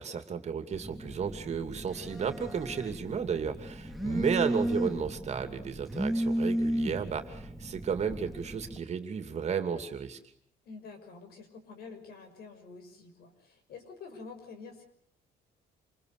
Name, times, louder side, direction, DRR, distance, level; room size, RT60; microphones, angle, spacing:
voice 1, 0.0-10.2, right 6 dB, 40° right, 8 dB, 2.7 m, -33 dB
Telephone, 0.7-8.8, equal, ahead, 2.0 m, -34 dB
voice 2, 10.6-14.8, left 4 dB, 65° left, 7 dB, 6.0 m, -48 dB
27.0 x 21.0 x 6.6 m, 0.66 s
cardioid pair, 110°, 17 cm